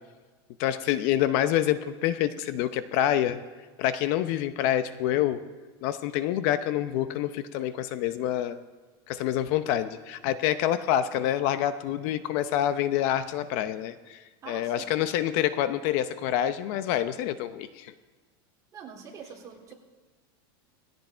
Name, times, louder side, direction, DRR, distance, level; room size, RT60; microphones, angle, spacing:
voice 1, 0.6-3.4 3.8-5.4 5.8-8.6 9.1-14.2 14.5-17.9, left 11 dB, 50° left, 11 dB, 0.8 m, -27 dB
voice 2, 14.4-14.9 18.7-19.7, right 6 dB, 25° right, -1 dB, 3.6 m, -44 dB
19.5 x 16.5 x 4.5 m, 1.3 s
supercardioid pair, 150°, 12 cm